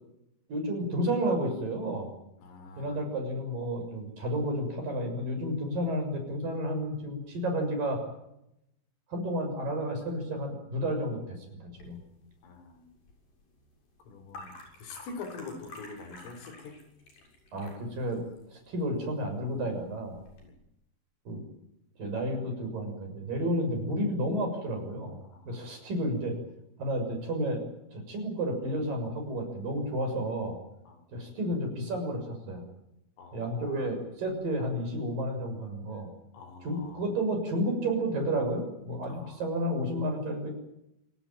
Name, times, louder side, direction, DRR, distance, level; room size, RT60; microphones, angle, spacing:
voice 1, 0.5-2.1 2.8-8.0 9.1-12.0 17.5-18.2 18.5-20.2 21.3-21.4 22.0-25.2 25.5-26.4 26.8-27.6 27.9-30.6 31.1-32.6 33.3-36.1 36.6-40.5, right 1 dB, 45° right, 5 dB, 8.1 m, -31 dB
voice 2, 2.4-3.0 12.4-12.9 14.1-16.8 20.4-20.6 25.3-25.7 30.9-31.1 33.2-33.9 36.3-37.0 39.1-39.5, left 4 dB, 85° left, 9 dB, 6.5 m, -45 dB
sound 1, 11.8-20.5, left 2 dB, 45° left, 8.7 m, -52 dB
28.0 x 18.0 x 9.1 m, 0.82 s
omnidirectional pair, 5.7 m